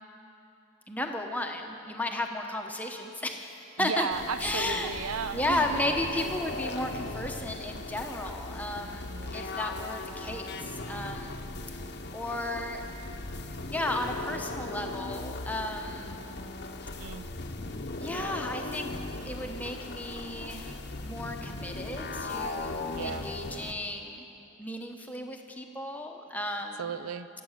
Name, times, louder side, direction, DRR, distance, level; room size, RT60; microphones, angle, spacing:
voice 1, 0.9-3.5 3.8-4.1 4.4-4.9 5.3-11.4 12.1-12.8 13.7-16.2 18.0-18.9 19.2-20.7 21.0-24.2 24.6-27.0, left 1 dB, 5° left, 3 dB, 0.9 m, -34 dB
voice 2, 3.8-5.8 9.1-9.5 17.0-17.3 22.9-23.3 26.8-27.3, right 6 dB, 85° right, 12 dB, 0.5 m, -35 dB
sound 1, 4.1-23.7, left 2 dB, 50° left, 0.8 m, -38 dB
24.0 x 8.5 x 6.5 m, 2.8 s
head